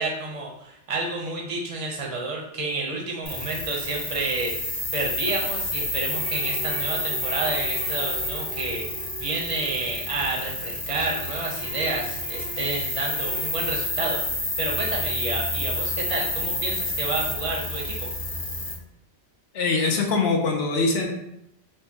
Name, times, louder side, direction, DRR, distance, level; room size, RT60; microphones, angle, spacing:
voice 1, 0.0-18.1, right 3 dB, 35° right, -1 dB, 0.7 m, -30 dB
sound 1, 3.2-18.7, left 1 dB, 50° left, 1.4 m, -29 dB
sound 2, 6.1-10.8 11.2-13.9, right 5 dB, 90° right, 1.1 m, -43 dB
voice 2, 19.5-21.1, left 3 dB, 70° left, 2 dB, 0.8 m, -23 dB
4.7 x 2.2 x 2.7 m, 0.79 s
omnidirectional pair, 1.1 m